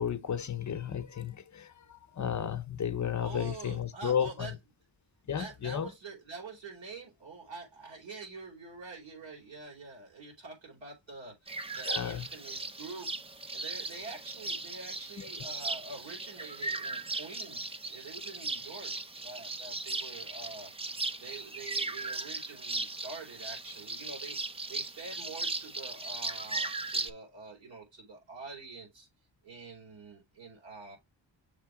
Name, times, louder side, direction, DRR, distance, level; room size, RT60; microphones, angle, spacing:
voice 1, 0.0-4.6 5.3-5.9 11.8-12.3 15.2-15.3, left 8 dB, 40° left, 0.6 m, -33 dB
voice 2, 3.2-4.5 5.3-13.1 13.5-18.9 19.2-20.7 21.2-29.1 29.4-31.0, right 4 dB, 80° right, 4.2 m, -46 dB
sound 1, 11.5-27.1, right 3 dB, 15° right, 0.4 m, -37 dB
6.6 x 3.4 x 4.7 m
wide cardioid pair, 155°, 44 cm